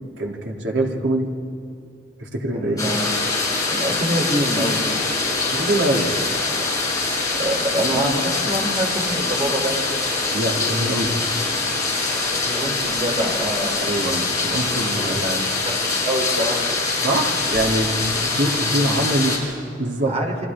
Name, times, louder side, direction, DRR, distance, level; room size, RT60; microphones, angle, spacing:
voice 1, 0.2-1.3 2.2-2.8 5.5-6.1 10.3-11.2 13.8-15.5 17.0-20.2, right 1 dB, 80° right, 0 dB, 3.0 m, -24 dB
voice 2, 2.5-3.0 3.7-4.8 7.4-9.9 12.3-13.8 15.0-15.2 16.1-16.7 20.1-20.5, right 1 dB, 35° right, 0 dB, 3.5 m, -25 dB
sound 1, 2.8-19.4, left 3 dB, 20° left, 5.5 m, -23 dB
29.5 x 24.5 x 3.7 m, 2.5 s
head